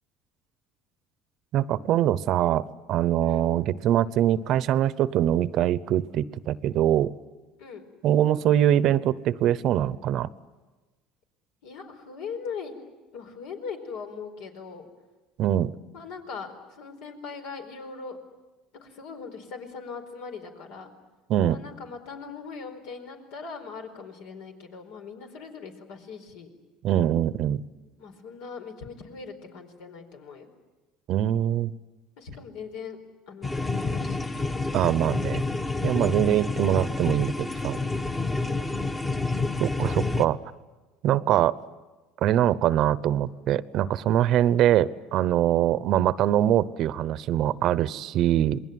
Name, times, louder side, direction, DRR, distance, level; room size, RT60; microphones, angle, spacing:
voice 1, 1.5-7.1 8.0-10.3 15.4-15.7 21.3-21.6 26.8-27.6 31.1-31.7 34.7-35.4 35.8-37.8 39.6-40.4 41.0-41.6 42.2-48.6, right 11 dB, 55° right, 17 dB, 0.8 m, -23 dB
voice 2, 11.6-12.7 13.1-14.9 15.9-18.2 18.7-20.9 21.5-26.5 28.0-30.5 32.2-33.0 33.3-34.2 36.0-36.3 38.3-38.7, left 5 dB, 80° left, 5 dB, 4.5 m, -40 dB
sound 1, 33.4-40.3, left 3 dB, 15° left, 1.2 m, -28 dB
28.0 x 21.0 x 9.4 m, 1.2 s
cardioid pair, 125°, 0 cm